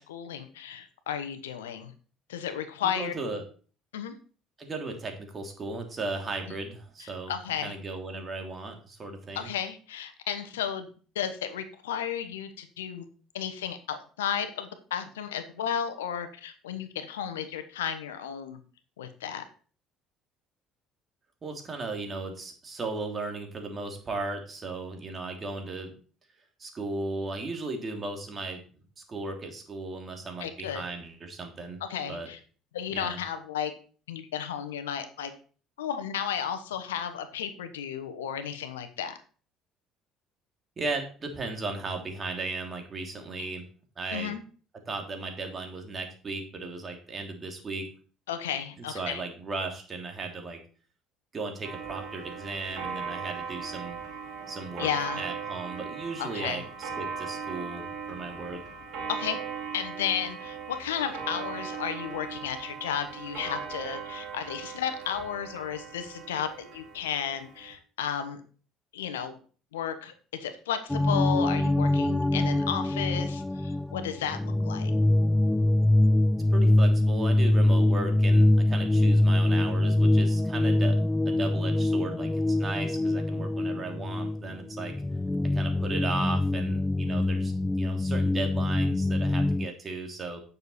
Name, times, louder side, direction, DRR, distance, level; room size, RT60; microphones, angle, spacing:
voice 1, 0.0-1.9 2.3-3.1 3.9-4.1 7.0-7.7 9.3-10.9 11.1-13.1 13.3-18.6 19.0-19.4 30.4-30.8 31.9-32.4 32.7-33.7 34.1-35.3 35.8-39.2 43.4-43.5 44.1-44.4 48.3-49.2 54.8-55.2 56.2-56.6 59.1-59.4 59.7-68.4 68.9-69.4 69.7-70.1 70.4-74.9, left 9 dB, 90° left, 10 dB, 1.1 m, -33 dB
voice 2, 2.8-3.4 4.6-7.3 7.6-9.5 21.4-25.9 26.6-28.6 29.1-31.8 32.1-32.3 32.9-33.2 40.8-43.6 44.0-44.4 44.9-47.9 48.9-50.6 51.3-54.0 54.5-54.9 55.2-58.6 76.5-84.9 85.5-90.4, right 3 dB, 35° right, 3 dB, 3.0 m, -36 dB
Clock, 51.6-67.7, right 6 dB, 60° right, 4.0 m, -38 dB
sound 1, 70.9-89.7, left 1 dB, 10° left, 0.4 m, -24 dB
9.5 x 6.8 x 4.3 m, 0.39 s
hypercardioid pair, 65°, 0 cm